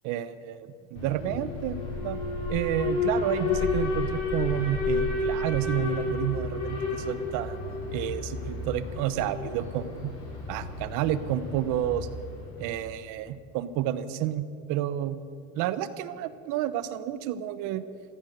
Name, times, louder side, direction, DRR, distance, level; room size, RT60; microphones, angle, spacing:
voice 1, 0.0-2.2 2.5-7.6 7.9-10.1 10.5-12.1 12.6-15.2 15.6-17.8, right 11 dB, 70° right, 14 dB, 1.1 m, -30 dB
Alarm, 1.0-13.0, left 3 dB, 60° left, 5.2 m, -31 dB
15.0 x 14.0 x 6.8 m, 2.3 s
cardioid pair, 125°, 32 cm